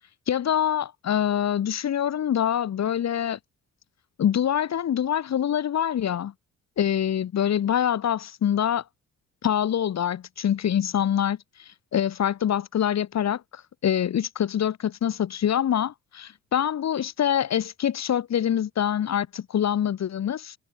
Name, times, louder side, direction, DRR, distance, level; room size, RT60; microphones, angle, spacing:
voice 1, 0.3-3.4 4.2-6.3 6.8-8.8 9.4-20.6, left 9 dB, 60° left, 3.4 m, -25 dB
cardioid pair, 90°, 30 cm